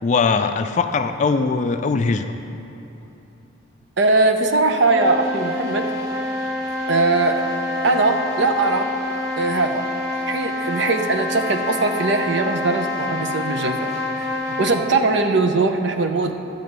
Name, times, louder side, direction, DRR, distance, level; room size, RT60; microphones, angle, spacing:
voice 1, 0.0-2.3, left 4 dB, 40° left, 8 dB, 0.3 m, -20 dB
voice 2, 4.0-5.9 6.9-7.4 7.8-8.9 9.4-9.8 10.3-13.9 14.6-16.3, right 3 dB, 65° right, 6 dB, 0.7 m, -20 dB
sound 1, 4.7-15.0, left 2 dB, 15° right, 1.7 m, -27 dB
11.5 x 4.1 x 8.0 m, 3.0 s
head